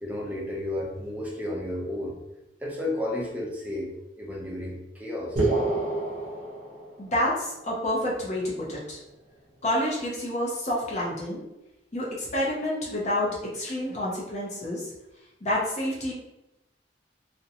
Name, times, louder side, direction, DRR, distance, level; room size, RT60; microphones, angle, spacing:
voice 1, 0.0-2.2 2.6-5.4, left 1 dB, 10° right, -3 dB, 0.5 m, -32 dB
sound 1, 5.4-7.3, right 2 dB, 40° right, 0.8 m, -27 dB
voice 2, 7.0-9.0 9.6-11.4 11.9-14.9 15.4-16.1, left 1 dB, 40° left, -5 dB, 0.6 m, -28 dB
2.5 x 2.1 x 2.8 m, 0.94 s
head